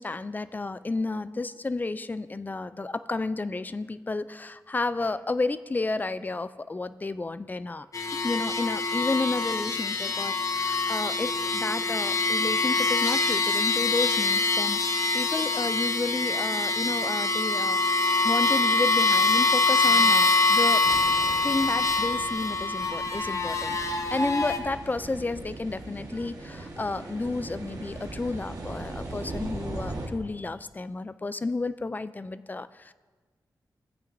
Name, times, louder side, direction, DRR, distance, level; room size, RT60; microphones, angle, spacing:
voice 1, 0.0-17.8 18.2-20.8 21.4-32.9, left 3 dB, 25° left, 14 dB, 0.3 m, -31 dB
sound 1, 7.9-24.6, left 3 dB, 45° left, 0.8 m, -24 dB
sound 2, 20.8-30.1, right 2 dB, 60° right, 1.5 m, -39 dB
14.5 x 8.9 x 2.6 m, 1.4 s
wide cardioid pair, 90°, 7 cm